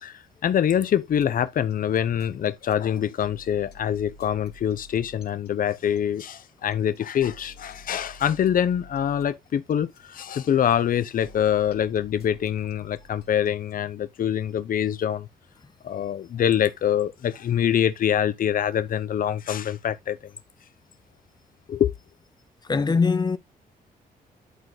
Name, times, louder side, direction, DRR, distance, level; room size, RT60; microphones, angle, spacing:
voice 1, 0.0-15.3 15.8-20.3 21.7-21.9, left 9 dB, 60° left, 0.8 m, -25 dB
sound 1, 1.1-13.8, left 2 dB, 80° left, 2.0 m, -50 dB
voice 2, 22.7-23.4, left 4 dB, 25° left, 0.8 m, -21 dB
11.0 x 4.1 x 3.2 m
cardioid pair, 90°, 16 cm